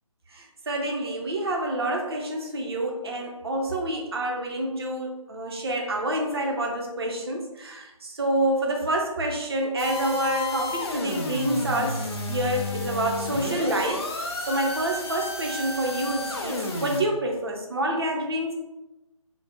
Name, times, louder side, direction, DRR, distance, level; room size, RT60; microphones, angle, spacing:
voice 1, 0.3-18.5, right 1 dB, 45° right, 1 dB, 0.5 m, -28 dB
sound 1, 9.8-17.0, left 2 dB, 45° left, 0.5 m, -31 dB
3.2 x 2.0 x 2.6 m, 1.0 s
figure-of-eight pair, 150°, 18 cm